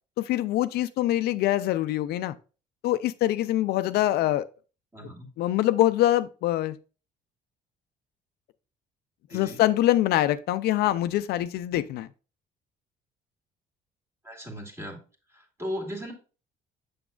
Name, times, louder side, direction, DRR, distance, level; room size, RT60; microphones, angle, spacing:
voice 1, 0.2-2.4 2.8-4.5 5.0-5.1 5.4-6.8 9.3-12.1, left 14 dB, 70° left, 0.4 m, -24 dB
voice 2, 4.9-5.3 9.3-9.6 14.2-15.0 15.3-16.1, equal, 15° right, 1.8 m, -37 dB
6.9 x 6.1 x 2.4 m
cardioid pair, 110°, 17 cm